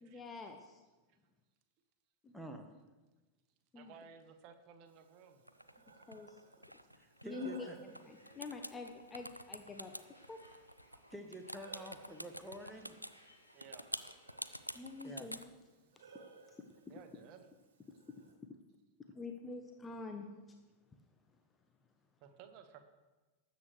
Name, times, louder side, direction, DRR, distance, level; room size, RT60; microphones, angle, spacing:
voice 1, 0.0-0.8 2.2-2.3 3.7-3.9 6.1-6.4 7.2-10.4 14.7-15.5 15.9-16.1 16.5-16.6 19.1-20.6, left 3 dB, 15° left, 4 dB, 0.9 m, -47 dB
voice 2, 2.3-2.7 7.0-7.8 11.1-13.0 15.0-15.3, right 1 dB, 5° right, 4 dB, 1.3 m, -48 dB
voice 3, 3.7-5.4 8.2-8.4 10.9-11.0 13.5-13.9 16.9-17.5 22.2-22.8, right 7 dB, 40° right, 7 dB, 1.3 m, -56 dB
Breathing, 4.9-18.3, right 4 dB, 65° right, 1.7 m, -61 dB
sound 1, 5.5-8.0 8.3-13.1 13.6-15.4, equal, 90° right, 0.5 m, -46 dB
sound 2, 7.8-15.2, left 1 dB, 90° left, 1.8 m, -66 dB
19.5 x 8.1 x 3.3 m, 1.2 s
figure-of-eight pair, 90°, 0 cm